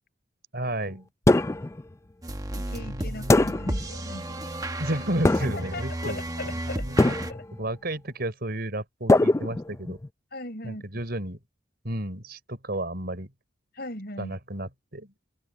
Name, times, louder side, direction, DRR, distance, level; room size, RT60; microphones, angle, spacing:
voice 1, 0.5-1.1 2.8-3.4 4.8-6.5 6.8-7.1 7.6-10.0 10.6-11.4 11.8-13.3 14.2-15.1, right 1 dB, 55° right, 5.0 m, -32 dB
sound 1, 1.3-1.8 3.3-3.9 5.2-5.8 7.0-7.6 9.1-10.1, left 2 dB, 15° left, 0.4 m, -22 dB
sound 2, 2.2-7.3, right 1 dB, 20° right, 1.1 m, -33 dB
voice 2, 2.5-4.6 5.4-7.4 10.3-10.8 13.7-14.4, left 2 dB, 55° left, 7.0 m, -39 dB
open air
head